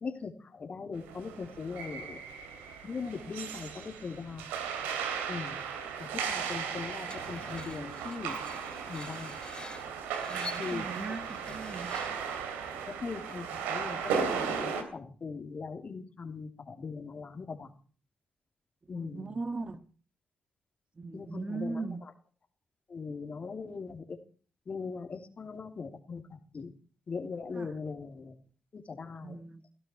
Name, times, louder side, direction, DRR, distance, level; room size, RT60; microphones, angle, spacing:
voice 1, 0.0-2.2 2.8-4.5 5.3-5.6 6.0-8.4 8.8-9.3 10.6-10.8 13.0-14.0 14.3-17.7 18.9-19.4 21.1-21.8 22.9-24.0 24.7-26.2 26.5-26.7 27.1-28.3 28.7-29.4, left 4 dB, 50° left, 3.2 m, -40 dB
sound 1, 1.0-14.8, right 6 dB, 90° right, 2.9 m, -36 dB
Screech, 7.1-12.3, left 3 dB, 30° left, 4.3 m, -47 dB
voice 2, 10.3-11.9 18.9-19.8 21.0-22.0 27.5-27.8 29.2-29.6, right 3 dB, 35° right, 1.7 m, -39 dB
20.0 x 15.5 x 4.5 m
supercardioid pair, 50°, 3 cm